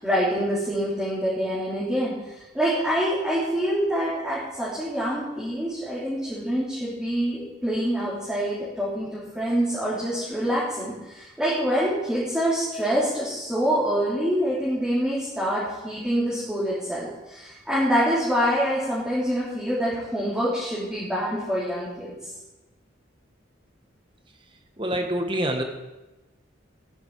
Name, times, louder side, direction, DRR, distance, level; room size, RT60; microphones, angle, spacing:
voice 1, 0.0-2.1 2.5-22.1, equal, 5° right, -9 dB, 3.4 m, -26 dB
voice 2, 24.8-25.6, right 1 dB, 25° right, 5 dB, 1.5 m, -26 dB
14.5 x 10.5 x 4.8 m, 1.1 s
head